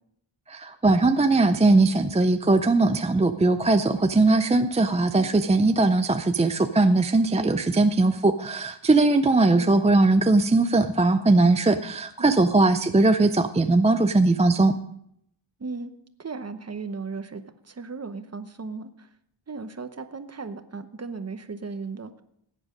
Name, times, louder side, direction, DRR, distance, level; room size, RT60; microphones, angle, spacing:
voice 1, 0.5-14.7, right 2 dB, 15° right, 8 dB, 0.4 m, -20 dB
voice 2, 15.6-15.9 16.2-18.9 19.5-22.1, right 4 dB, 35° right, 10 dB, 0.9 m, -36 dB
16.0 x 9.8 x 5.1 m, 0.73 s
wide cardioid pair, 150°, 47 cm